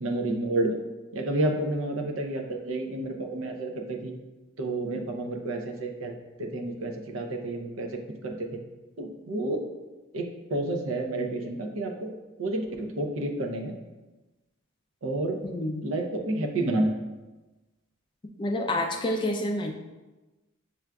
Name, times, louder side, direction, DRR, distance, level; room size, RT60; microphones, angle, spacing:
voice 1, 0.0-0.8 1.1-4.1 4.6-6.1 6.4-7.9 8.2-8.6 9.0-9.6 10.1-12.1 12.4-13.7 15.0-15.4 15.8-16.9, right 2 dB, 75° right, 3 dB, 0.5 m, -30 dB
voice 2, 15.4-15.9 18.4-19.7, left 1 dB, 25° left, 3 dB, 0.3 m, -28 dB
6.9 x 2.4 x 2.2 m, 1.1 s
head